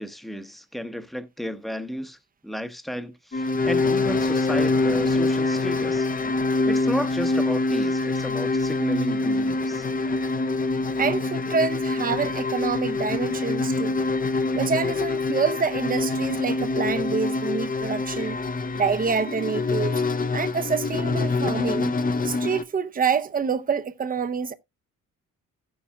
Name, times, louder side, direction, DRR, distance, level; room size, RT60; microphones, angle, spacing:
voice 1, 0.0-2.2 2.4-6.1 6.5-9.9, equal, ahead, 0.9 m, -33 dB
sound 1, 3.3-22.6, left 3 dB, 30° left, 0.7 m, -25 dB
voice 2, 11.0-14.0 14.4-18.4 18.7-20.0 20.3-21.9 22.2-24.5, right 5 dB, 30° right, 0.7 m, -27 dB
15.0 x 7.1 x 2.3 m
cardioid pair, 90°, 30 cm